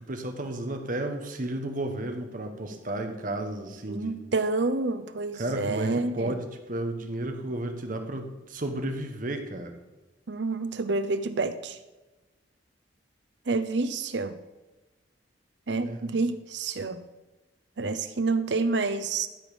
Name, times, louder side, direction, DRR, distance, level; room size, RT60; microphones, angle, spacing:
voice 1, 0.0-4.1 5.4-9.7 15.8-16.1, right 1 dB, 45° right, 6 dB, 1.1 m, -33 dB
voice 2, 3.9-6.3 10.3-11.8 13.5-14.4 15.7-17.0 17.8-19.3, right 3 dB, 70° right, 11 dB, 0.7 m, -28 dB
13.0 x 5.3 x 5.0 m, 1.1 s
head